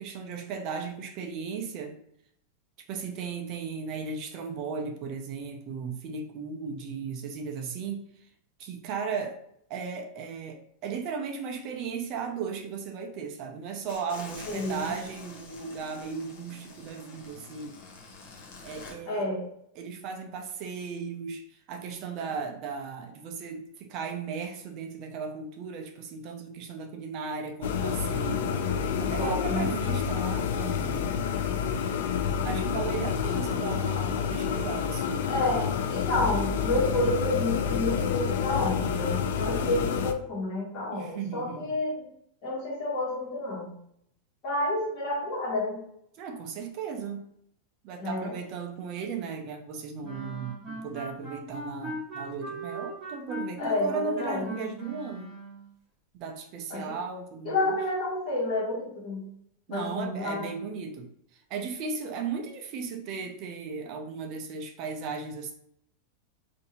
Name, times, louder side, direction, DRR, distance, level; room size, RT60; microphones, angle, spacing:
voice 1, 0.0-2.0 2.9-8.0 8.6-9.4 9.7-17.7 18.6-19.3 19.8-31.1 32.4-35.4 40.9-41.8 46.2-47.2 47.8-55.3 56.1-57.8 59.7-61.1 61.5-65.5, right 5 dB, 35° right, 3 dB, 0.4 m, -36 dB
sound 1, 13.9-18.9, left 3 dB, 45° left, 0.7 m, -46 dB
voice 2, 14.5-14.9 19.1-19.5 29.2-29.7 35.3-42.1 42.4-43.7 44.4-45.8 48.0-48.3 53.6-54.5 56.7-57.0 57.4-59.2 59.7-60.5, left 2 dB, 30° left, -7 dB, 1.3 m, -29 dB
sound 2, 27.6-40.1, left 7 dB, 70° left, 0.3 m, -29 dB
sound 3, 50.0-55.7, right 1 dB, 15° right, 1.1 m, -39 dB
2.7 x 2.5 x 4.2 m, 0.72 s
supercardioid pair, 170°, 0 cm